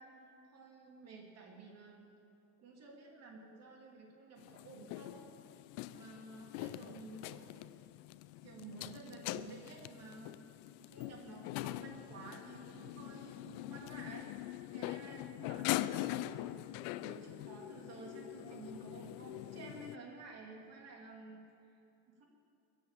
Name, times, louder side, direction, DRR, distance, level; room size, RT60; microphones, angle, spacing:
voice 1, 0.0-2.0 2.6-5.3 5.9-7.7 8.4-10.3 10.8-14.3 14.7-16.4 17.0-21.5 22.1-22.3, right 3 dB, 35° right, 0 dB, 2.7 m, -52 dB
sound 1, 4.4-20.0, left 16 dB, 80° left, 0.6 m, -43 dB
22.5 x 8.4 x 7.5 m, 2.7 s
cardioid pair, 165°, 43 cm